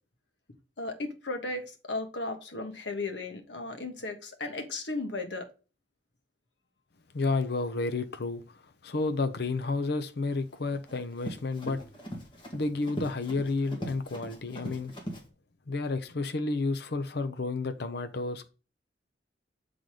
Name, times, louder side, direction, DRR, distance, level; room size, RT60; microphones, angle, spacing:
voice 1, 0.8-5.5, left 2 dB, 80° left, 1.5 m, -35 dB
voice 2, 7.1-11.8 12.5-14.9 15.7-18.5, left 3 dB, 65° left, 0.7 m, -31 dB
Run, 10.4-15.2, equal, 30° left, 1.9 m, -40 dB
7.5 x 4.0 x 4.9 m
head